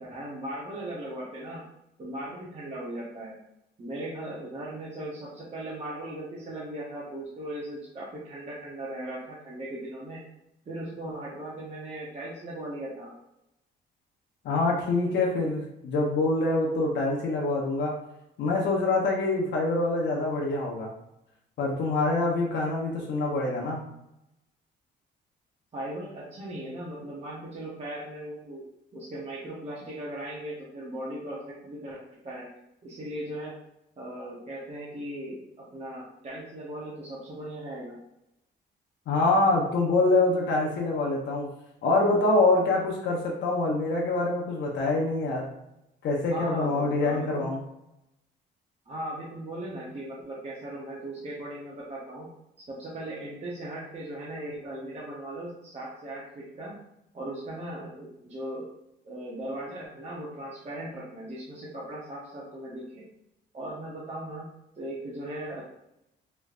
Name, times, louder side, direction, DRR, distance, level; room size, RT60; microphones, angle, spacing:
voice 1, 0.0-1.6 2.0-3.4 3.8-10.2 10.6-13.1 25.7-28.6 28.9-32.5 32.8-33.5 34.0-38.0 46.3-47.5 48.9-52.3 52.7-56.7 57.1-58.7 59.0-63.1 63.5-64.5 64.7-65.6, right 1 dB, 35° right, -6 dB, 0.9 m, -38 dB
voice 2, 14.4-18.0 18.4-20.9 21.6-23.8 39.1-41.5 41.8-45.4 46.0-47.6, left 2 dB, 65° left, -2 dB, 0.7 m, -25 dB
3.2 x 3.1 x 2.4 m, 0.85 s
cardioid pair, 90°, 20 cm